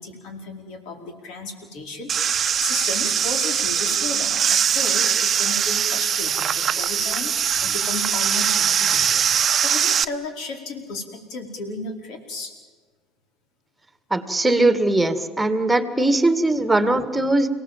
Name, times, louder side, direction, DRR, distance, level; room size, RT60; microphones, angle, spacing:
voice 1, 0.0-12.5, left 3 dB, 60° left, 4 dB, 4.7 m, -34 dB
sound 1, 2.1-10.0, right 8 dB, 40° right, 1.0 m, -21 dB
voice 2, 14.1-17.5, right 2 dB, 10° right, 10 dB, 2.3 m, -20 dB
30.0 x 18.0 x 7.6 m, 1.4 s
hypercardioid pair, 65°, 0 cm